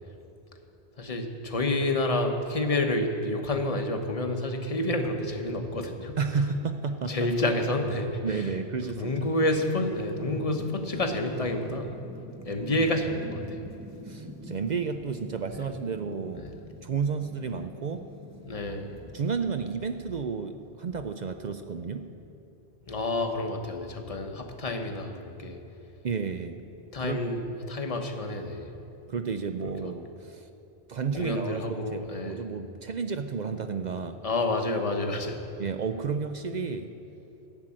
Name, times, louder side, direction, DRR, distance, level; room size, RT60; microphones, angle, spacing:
voice 1, 1.0-6.2 7.1-8.5 8.8-11.9 12.4-13.7 16.4-16.5 18.5-19.0 22.8-25.6 26.9-28.7 29.8-29.9 31.1-32.4 34.2-35.4, left 1 dB, 35° left, 5 dB, 1.0 m, -29 dB
voice 2, 6.2-7.3 8.2-9.1 14.1-16.5 16.8-18.0 19.1-22.1 26.0-26.6 27.0-27.2 29.1-30.5 30.9-34.2 35.6-36.9, right 5 dB, 55° right, 8 dB, 0.5 m, -31 dB
sound 1, 9.0-19.5, right 1 dB, 15° right, 0.7 m, -46 dB
12.0 x 7.5 x 8.7 m, 3.0 s
omnidirectional pair, 1.1 m